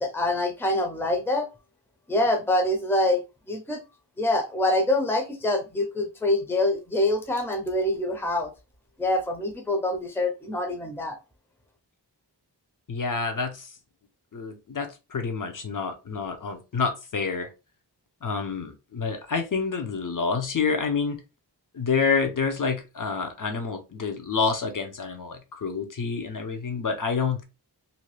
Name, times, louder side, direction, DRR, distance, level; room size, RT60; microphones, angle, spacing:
voice 1, 0.0-1.5 2.1-3.2 3.5-3.8 4.2-8.5 9.0-11.2, left 1 dB, 5° left, 4 dB, 0.6 m, -25 dB
voice 2, 12.9-13.7 14.3-17.5 18.2-21.2 21.7-27.4, left 5 dB, 50° left, 6 dB, 0.8 m, -28 dB
2.8 x 2.3 x 3.1 m, 0.28 s
wide cardioid pair, 70°, 42 cm